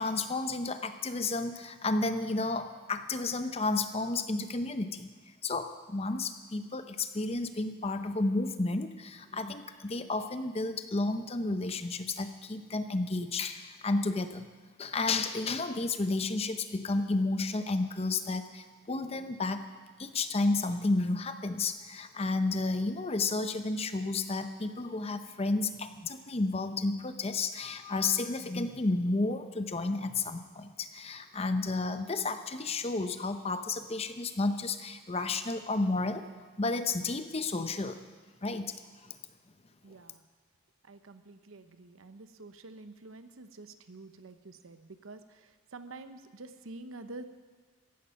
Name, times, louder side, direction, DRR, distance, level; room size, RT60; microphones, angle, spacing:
voice 1, 0.0-5.1 5.4-14.5 14.8-19.6 20.0-36.3 36.6-38.0 38.4-38.7, left 3 dB, 30° left, 9 dB, 0.7 m, -32 dB
voice 2, 39.8-40.2 40.8-47.2, right 2 dB, 85° right, 10 dB, 0.9 m, -48 dB
15.0 x 11.0 x 5.7 m, 1.4 s
head